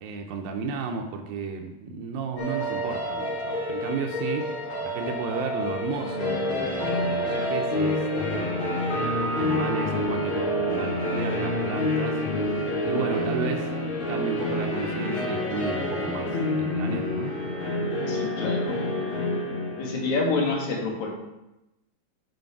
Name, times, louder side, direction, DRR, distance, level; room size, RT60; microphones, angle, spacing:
voice 1, 0.0-4.5 4.8-8.7 9.3-13.7 14.1-17.3, right 5 dB, 90° right, 2 dB, 2.0 m, -33 dB
sound 1, 2.4-20.5, left 1 dB, 60° left, 3.3 m, -28 dB
voice 2, 18.1-18.8 19.8-21.1, left 3 dB, 75° left, -1 dB, 2.8 m, -27 dB
7.9 x 5.2 x 4.6 m, 0.94 s
omnidirectional pair, 3.4 m